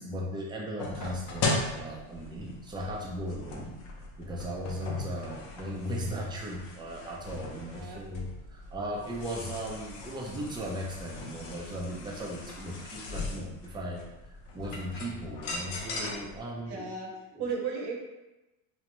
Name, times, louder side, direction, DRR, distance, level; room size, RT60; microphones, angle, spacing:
voice 1, 0.0-3.8 4.2-14.0 14.5-16.9 17.3-17.4, equal, 10° right, -2 dB, 0.3 m, -37 dB
sound 1, 0.8-16.4, left 3 dB, 65° left, 0.7 m, -38 dB
voice 2, 16.6-17.1 17.4-18.0, right 5 dB, 50° right, -1 dB, 0.8 m, -35 dB
2.4 x 2.1 x 2.9 m, 1.0 s
supercardioid pair, 90°, 48 cm